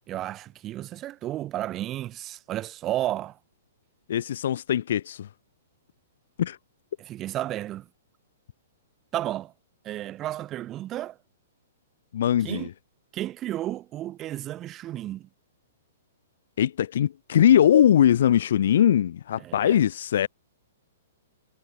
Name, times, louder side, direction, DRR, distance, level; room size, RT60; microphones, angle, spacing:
voice 1, 0.1-3.4 7.0-7.9 9.1-9.5 9.8-11.2 12.4-12.7 13.1-15.3 19.4-19.8, right 13 dB, 25° right, 0.5 m, -32 dB
voice 2, 4.1-5.3 6.4-6.6 12.1-12.7 16.6-20.3, left 10 dB, 55° left, 0.4 m, -21 dB
figure-of-eight pair, 110°, 0 cm